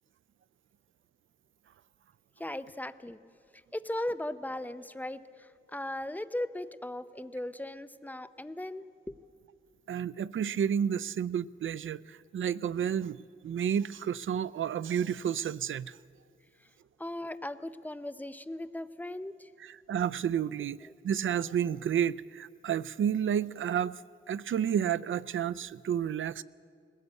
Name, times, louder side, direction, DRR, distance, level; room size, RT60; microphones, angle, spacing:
voice 1, 2.4-3.2 3.7-9.2 17.0-19.5 20.9-21.0, left 1 dB, 10° left, 0.6 m, -38 dB
voice 2, 9.9-16.0 19.6-24.0 24.3-26.4, right 9 dB, 70° right, 0.4 m, -31 dB
20.0 x 16.5 x 8.2 m
wide cardioid pair, 100°, 21 cm